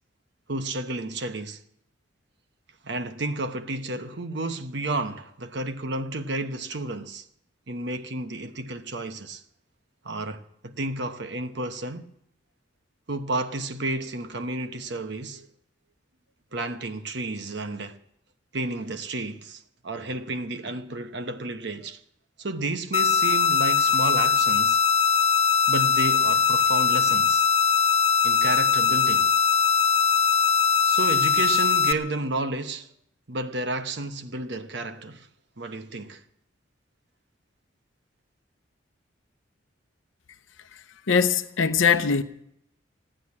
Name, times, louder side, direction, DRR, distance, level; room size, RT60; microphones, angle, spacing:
voice 1, 0.5-1.6 2.8-7.2 7.7-9.4 10.0-12.0 13.1-15.5 16.5-18.0 18.5-22.0 22.4-24.8 25.7-27.5 28.2-29.3 30.8-32.9 33.3-35.3 35.6-36.2, right 2 dB, 60° right, 1.0 m, -31 dB
sound 1, 22.9-31.9, left 6 dB, 35° left, 0.6 m, -21 dB
voice 2, 40.7-42.2, left 6 dB, 80° left, 0.8 m, -22 dB
16.5 x 10.0 x 8.5 m
head